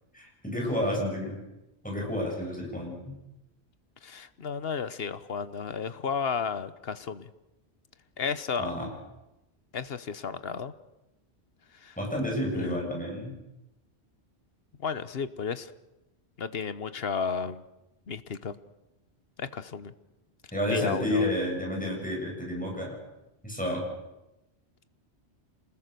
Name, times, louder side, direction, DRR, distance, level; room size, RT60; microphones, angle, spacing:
voice 1, 0.1-1.4 1.8-3.2 8.6-8.9 12.0-13.4 20.5-23.0 23.4-23.8, left 1 dB, 5° left, -1 dB, 7.7 m, -30 dB
voice 2, 4.0-7.3 8.2-8.7 9.7-10.7 11.8-11.9 12.5-12.9 14.8-15.7 16.4-17.6 18.1-18.6 19.4-19.9 20.7-21.3, left 6 dB, 60° left, 14 dB, 1.2 m, -33 dB
27.5 x 20.5 x 6.9 m, 0.96 s
omnidirectional pair, 1.2 m